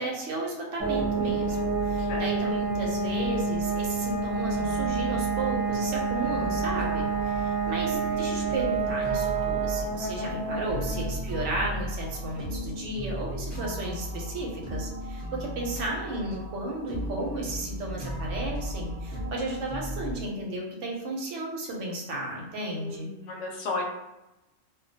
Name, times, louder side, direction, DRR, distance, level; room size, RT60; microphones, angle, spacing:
voice 1, 0.0-23.1, right 1 dB, 75° right, -1 dB, 0.9 m, -34 dB
sound 1, 0.8-15.4, right 4 dB, 30° left, 0.5 m, -29 dB
voice 2, 1.5-2.5 22.6-23.8, left 3 dB, 75° left, 0 dB, 0.9 m, -36 dB
sound 2, 4.5-20.1, equal, 25° right, 0.8 m, -37 dB
2.3 x 2.1 x 2.6 m, 0.97 s
omnidirectional pair, 1.3 m